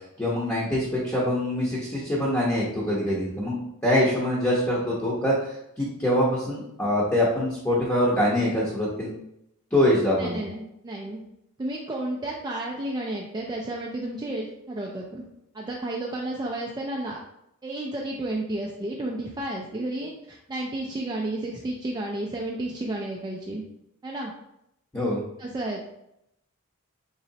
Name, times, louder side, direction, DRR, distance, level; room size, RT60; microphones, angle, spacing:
voice 1, 0.2-3.6 3.8-9.1 9.7-10.4 24.9-25.2, left 1 dB, 10° left, -8 dB, 0.7 m, -24 dB
voice 2, 10.2-11.2 11.6-15.2 15.5-17.2 17.6-23.6 24.0-24.3 25.4-25.9, right 1 dB, 20° right, -2 dB, 0.3 m, -32 dB
4.0 x 3.1 x 2.7 m, 0.80 s
head